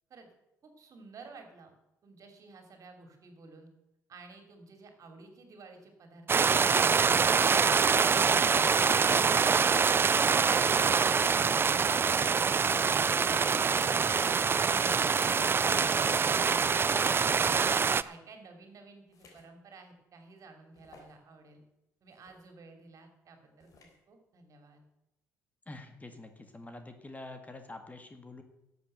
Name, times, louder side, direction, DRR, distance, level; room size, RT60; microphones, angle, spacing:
voice 1, 0.6-1.7 2.0-3.7 4.1-7.6 18.0-21.6 22.0-24.8, right 4 dB, 55° right, 5 dB, 3.1 m, -53 dB
sound 1, 6.3-18.0, right 5 dB, 35° right, 0.5 m, -25 dB
voice 2, 8.4-8.9 25.7-28.4, left 2 dB, 20° left, 7 dB, 1.9 m, -46 dB
sound 2, 19.1-19.5 20.0-20.1 20.7-21.2 22.1-22.4 23.6-24.0, left 3 dB, 55° left, 3.7 m, -58 dB
11.5 x 8.0 x 7.9 m, 0.86 s
supercardioid pair, 70°, 7 cm